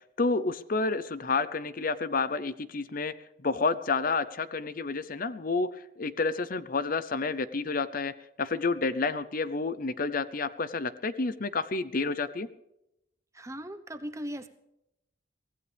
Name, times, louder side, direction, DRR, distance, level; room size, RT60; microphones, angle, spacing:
voice 1, 0.2-3.1 3.4-8.1 8.4-12.5, left 4 dB, 45° left, 14 dB, 0.7 m, -30 dB
voice 2, 13.3-14.5, equal, 15° right, 8 dB, 1.0 m, -38 dB
23.5 x 16.5 x 3.5 m, 0.86 s
head